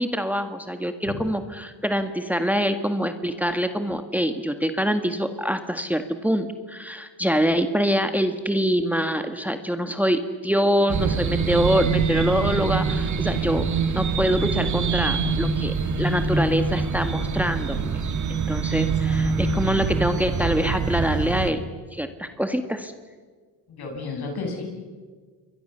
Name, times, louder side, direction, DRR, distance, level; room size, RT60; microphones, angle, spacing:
voice 1, 0.0-18.0 18.3-21.6 21.9-22.9, equal, 5° right, 8 dB, 1.7 m, -25 dB
sound 1, 10.9-21.5, right 5 dB, 45° right, 2.1 m, -25 dB
voice 2, 18.7-19.2 23.8-24.6, left 4 dB, 65° left, 3 dB, 7.1 m, -33 dB
27.5 x 23.0 x 6.9 m, 1.5 s
cardioid pair, 75°, 41 cm